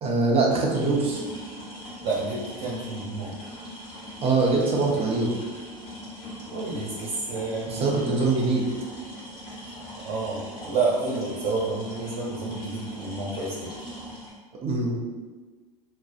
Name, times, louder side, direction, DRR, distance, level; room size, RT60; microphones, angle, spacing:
voice 1, 0.0-1.2 4.2-5.4 7.7-8.6 14.6-15.0, right 3 dB, 30° right, -2 dB, 0.6 m, -23 dB
sound 1, 0.7-14.3, equal, 25° left, 1.1 m, -41 dB
voice 2, 2.0-3.3 6.5-7.9 10.0-13.7, right 3 dB, 60° right, -7 dB, 1.1 m, -29 dB
2.5 x 2.2 x 2.4 m, 1.3 s
hypercardioid pair, 90°, 21 cm